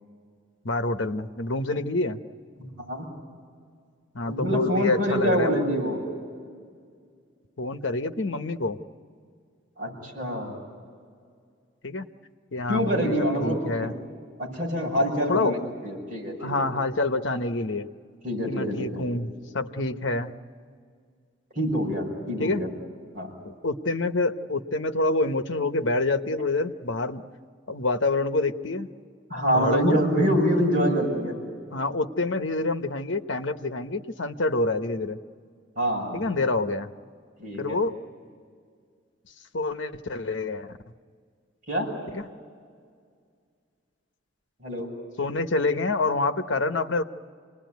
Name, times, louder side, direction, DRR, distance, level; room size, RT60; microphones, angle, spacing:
voice 1, 0.6-2.2 4.1-5.6 7.6-8.8 11.8-12.0 12.5-13.1 13.4-13.9 15.3-15.5 16.4-17.9 18.5-20.3 22.4-22.6 23.4-27.2 27.7-28.9 29.5-30.0 31.7-35.2 36.1-36.9 37.6-37.9 39.5-40.7 42.1-42.3 45.2-47.0, left 2 dB, 70° left, 8 dB, 1.0 m, -27 dB
voice 2, 2.6-3.1 4.2-6.0 9.8-10.5 12.7-13.6 13.8-13.9 14.4-15.6 15.8-16.7 18.2-19.0 21.6-22.7 23.1-23.3 29.3-31.3 35.8-36.2 37.4-37.8 41.7-41.9 44.6-44.9, equal, 45° right, -2 dB, 7.3 m, -25 dB
28.0 x 20.0 x 9.4 m, 2.1 s
head